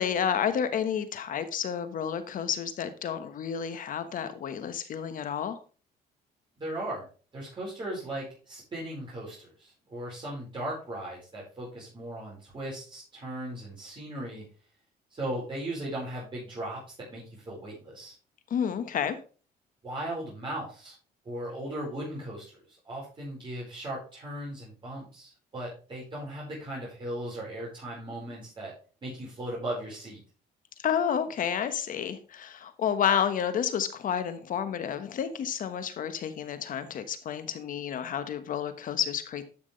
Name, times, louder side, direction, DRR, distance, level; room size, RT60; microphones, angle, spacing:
voice 1, 0.0-5.6 18.5-19.2 30.8-39.5, left 8 dB, 55° left, 11 dB, 1.3 m, -30 dB
voice 2, 6.6-7.0 7.3-14.4 15.1-16.8 17.1-18.1 19.8-20.9 21.2-22.6 22.8-28.7 29.0-30.2, right 1 dB, 30° right, -6 dB, 4.7 m, -37 dB
12.0 x 6.1 x 3.3 m, 0.36 s
cardioid pair, 110°, 17 cm